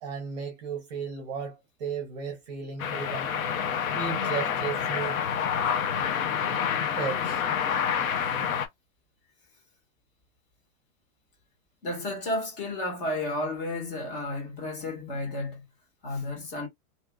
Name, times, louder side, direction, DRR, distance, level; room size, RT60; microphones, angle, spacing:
voice 1, 0.0-3.3 3.9-5.2 7.0-7.4, right 6 dB, 30° right, 0.7 m, -35 dB
sound 1, 2.8-8.7, left 7 dB, 70° left, 0.7 m, -28 dB
voice 2, 11.8-15.6 16.0-16.7, left 1 dB, 40° left, 1.4 m, -32 dB
2.8 x 2.4 x 2.2 m
supercardioid pair, 175°, 43 cm